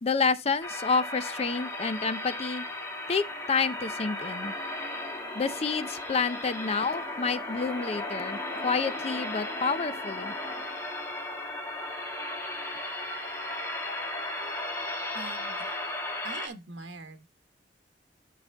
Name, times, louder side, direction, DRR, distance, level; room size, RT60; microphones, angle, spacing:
voice 1, 0.0-2.6 3.1-4.5 5.3-10.3, left 5 dB, 35° left, 0.5 m, -29 dB
sound 1, 0.6-16.5, left 1 dB, 15° left, 1.4 m, -35 dB
voice 2, 15.1-15.8 16.2-17.3, right 3 dB, 85° right, 1.1 m, -43 dB
11.0 x 4.2 x 3.4 m
head